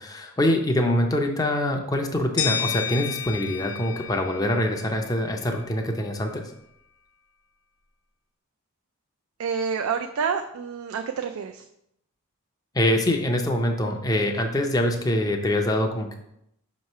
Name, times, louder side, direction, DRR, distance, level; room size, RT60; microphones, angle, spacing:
voice 1, 0.0-6.4 12.7-16.2, left 1 dB, 15° left, 3 dB, 0.5 m, -24 dB
sound 1, 2.4-5.3, left 8 dB, 70° left, 1.0 m, -31 dB
voice 2, 9.4-11.6, right 6 dB, 70° right, 6 dB, 0.4 m, -28 dB
5.6 x 3.1 x 5.4 m, 0.78 s
head